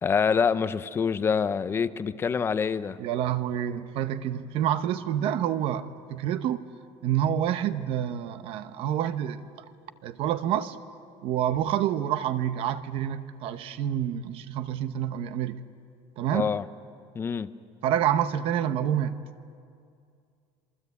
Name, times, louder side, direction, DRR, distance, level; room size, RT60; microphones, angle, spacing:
voice 1, 0.0-3.0 16.3-16.6 17.1-17.5, left 6 dB, 20° left, 14 dB, 0.6 m, -26 dB
voice 2, 3.0-6.6 7.0-9.4 10.0-10.8 11.2-15.6 16.2-16.5 17.8-19.2, right 10 dB, 45° right, 11 dB, 0.9 m, -28 dB
27.0 x 22.5 x 8.3 m, 2.4 s
cardioid pair, 170°, 13 cm